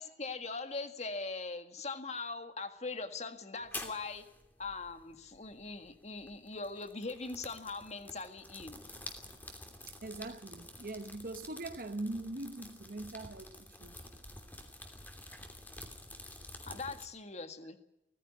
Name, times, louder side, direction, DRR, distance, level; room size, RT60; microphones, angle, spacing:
voice 1, 0.0-4.2 4.6-8.9 16.6-17.8, left 3 dB, 40° left, 1.8 m, -41 dB
sound 1, 3.6-17.1, left 1 dB, 10° left, 2.9 m, -49 dB
voice 2, 9.9-13.9, right 2 dB, 50° right, 1.0 m, -42 dB
19.0 x 15.0 x 9.7 m
head